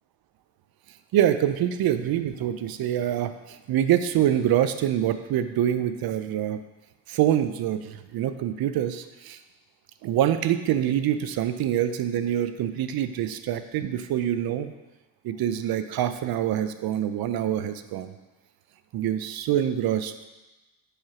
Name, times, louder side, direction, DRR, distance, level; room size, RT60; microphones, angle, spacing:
voice 1, 1.1-3.3 3.7-6.6 7.1-9.4 10.0-14.7 15.2-18.1 18.9-20.1, right 11 dB, 55° right, 10 dB, 0.6 m, -25 dB
5.0 x 4.5 x 5.7 m, 1.1 s
supercardioid pair, 85°, 43 cm